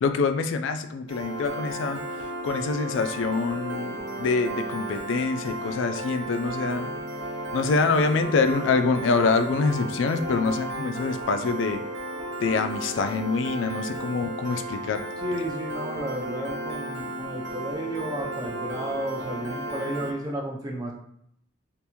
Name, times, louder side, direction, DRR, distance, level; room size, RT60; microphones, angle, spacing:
voice 1, 0.0-2.0 2.4-6.9 7.5-11.8 12.4-15.0, left 4 dB, 70° left, 8 dB, 0.3 m, -25 dB
Piano, 1.1-20.1, right 1 dB, 60° right, 0.7 m, -34 dB
voice 2, 15.2-20.9, right 1 dB, 20° right, -1 dB, 0.4 m, -32 dB
3.4 x 2.5 x 2.9 m, 0.72 s
head